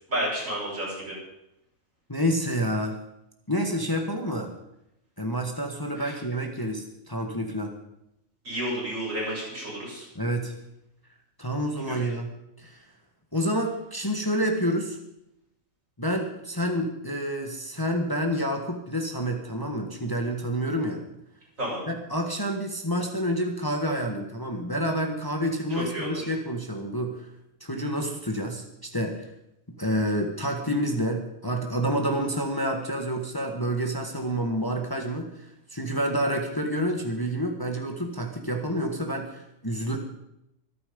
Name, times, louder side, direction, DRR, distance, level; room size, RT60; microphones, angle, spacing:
voice 1, 0.1-1.2 6.0-6.1 8.4-10.1 11.9-12.0 21.6-21.8 25.7-26.3, right 1 dB, 70° right, -5 dB, 7.8 m, -31 dB
voice 2, 2.1-3.0 3.5-4.5 5.2-7.7 10.1-10.5 11.4-12.8 13.3-15.0 16.0-21.0 21.9-27.3 27.6-29.2 29.8-35.3 35.7-40.0, equal, 15° left, 3 dB, 1.6 m, -28 dB
24.5 x 8.8 x 5.3 m, 0.83 s
omnidirectional pair, 1.4 m